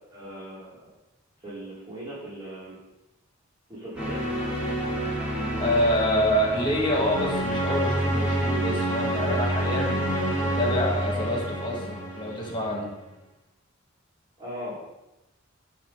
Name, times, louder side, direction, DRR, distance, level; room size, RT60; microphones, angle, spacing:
voice 1, 0.1-0.7 1.4-2.8 3.7-4.2 14.4-14.7, equal, 20° right, -11 dB, 2.4 m, -38 dB
sound 1, 4.0-12.8, right 1 dB, 5° right, 1.8 m, -28 dB
voice 2, 5.6-12.9, equal, 25° left, -2 dB, 1.7 m, -27 dB
6.6 x 4.1 x 6.4 m, 0.97 s
head